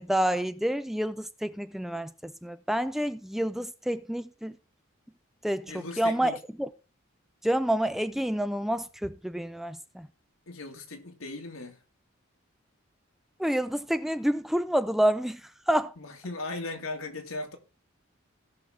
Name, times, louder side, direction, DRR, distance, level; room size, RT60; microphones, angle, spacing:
voice 1, 0.0-4.6 5.4-6.7 7.4-10.1 13.4-15.4 15.7-15.9, right 1 dB, ahead, 0.4 m, -28 dB
voice 2, 5.7-6.4 10.5-11.8 16.0-17.6, left 2 dB, 80° left, 2.1 m, -38 dB
17.0 x 6.1 x 3.7 m
head